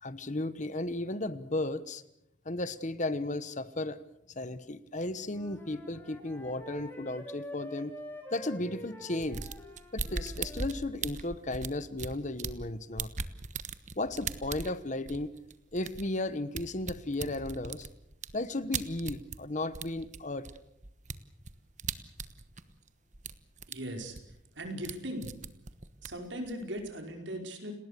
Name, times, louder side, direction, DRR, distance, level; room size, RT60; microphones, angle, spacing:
voice 1, 0.0-2.0 2.4-4.0 4.3-7.9 8.3-9.5 9.9-13.1 14.0-15.3 15.7-17.9 18.3-20.5, left 2 dB, 40° left, 15 dB, 1.1 m, -34 dB
Wind instrument woodwind instrument, 5.3-10.8, equal, 10° left, 3.7 m, -46 dB
sound 1, 9.2-12.7 13.0-19.4 19.7-22.9 23.1-23.7 24.0-25.0 25.2-26.9, right 5 dB, 40° right, 1.2 m, -39 dB
voice 2, 23.7-24.2 24.5-25.3 26.0-27.7, equal, 70° right, 4 dB, 5.0 m, -38 dB
29.5 x 19.5 x 6.8 m, 0.81 s
head